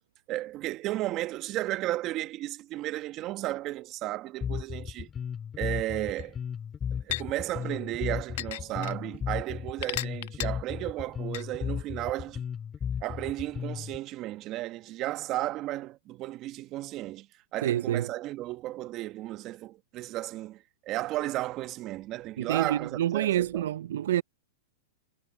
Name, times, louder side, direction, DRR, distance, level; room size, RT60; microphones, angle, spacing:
voice 1, 0.3-5.1 5.6-6.4 6.9-12.4 13.0-23.7, right 16 dB, 35° right, 1.4 m, -34 dB
Bass guitar, 4.4-14.0, left 7 dB, 20° left, 2.0 m, -35 dB
sound 1, 6.2-6.3 7.1-7.2 8.4-8.9 9.8-10.5 11.3-11.4, left 17 dB, 60° left, 1.2 m, -33 dB
voice 2, 17.6-18.1 22.4-24.2, right 12 dB, 70° right, 0.4 m, -27 dB
hypercardioid pair, 125°, 0 cm